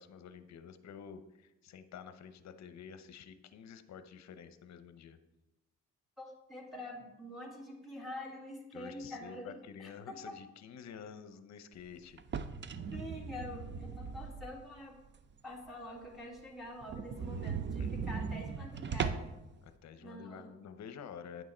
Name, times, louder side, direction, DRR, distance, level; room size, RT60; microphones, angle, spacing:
voice 1, 0.0-5.2 8.7-12.2 17.1-18.0 19.6-21.4, left 7 dB, 60° left, 10 dB, 0.8 m, -50 dB
voice 2, 6.2-10.4 12.9-15.0 15.4-19.3 20.0-20.5, left 1 dB, ahead, -4 dB, 2.3 m, -46 dB
Opening Drawer, 12.2-14.7 15.2-15.3 15.7-15.8 16.0-16.1 16.4-16.5 16.8-19.4, right 6 dB, 40° right, 0.5 m, -38 dB
9.3 x 6.2 x 4.4 m, 0.96 s
cardioid pair, 90°, 30 cm